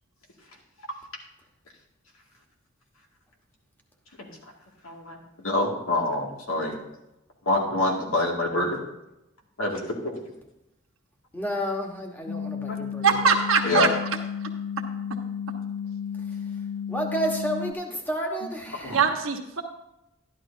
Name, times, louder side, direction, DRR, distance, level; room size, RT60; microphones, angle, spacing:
voice 1, 5.4-6.8 7.5-8.8 9.6-10.2 12.7-12.8 13.6-13.9 18.8-19.0, left 2 dB, 90° left, -1 dB, 2.3 m, -26 dB
voice 2, 11.3-13.2 16.1-16.2 16.9-19.0, equal, 10° left, 1 dB, 1.3 m, -30 dB
sound 1, 12.3-17.7, left 7 dB, 45° left, 0.4 m, -33 dB
voice 3, 13.0-13.9 18.9-19.6, right 5 dB, 70° right, 2 dB, 1.3 m, -22 dB
12.5 x 11.0 x 2.7 m, 0.89 s
head